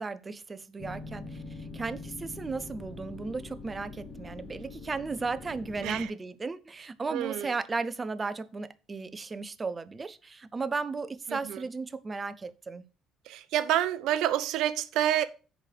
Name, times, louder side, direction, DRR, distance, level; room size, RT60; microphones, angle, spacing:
voice 1, 0.0-12.8, right 4 dB, 25° right, 0.6 m, -35 dB
sound 1, 0.8-6.0, left 3 dB, 35° left, 1.7 m, -43 dB
voice 2, 7.1-7.5 11.3-11.6 13.3-15.3, right 12 dB, 80° right, 0.7 m, -28 dB
6.5 x 5.1 x 6.6 m
cardioid pair, 115°, 0 cm